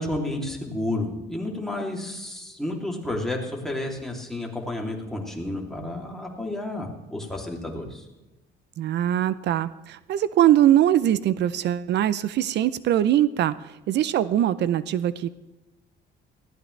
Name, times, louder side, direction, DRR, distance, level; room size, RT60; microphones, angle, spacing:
voice 1, 0.0-8.0, left 1 dB, ahead, -1 dB, 3.0 m, -31 dB
voice 2, 8.8-15.3, right 12 dB, 60° right, 15 dB, 0.6 m, -22 dB
19.5 x 15.5 x 3.3 m, 1.0 s
cardioid pair, 120°, 20 cm